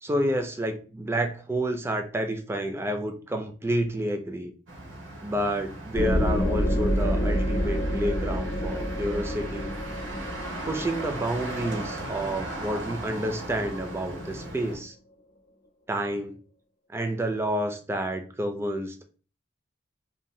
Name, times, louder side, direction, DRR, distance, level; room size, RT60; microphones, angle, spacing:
voice 1, 0.0-4.5 5.2-9.7 10.6-14.9 15.9-16.4 16.9-19.0, right 1 dB, 15° right, 6 dB, 0.3 m, -29 dB
Motor vehicle (road), 4.7-14.8, right 1 dB, 80° right, 0.7 m, -38 dB
sound 1, 5.9-13.3, equal, 70° left, 0.6 m, -28 dB
2.6 x 2.1 x 3.0 m, 0.38 s
head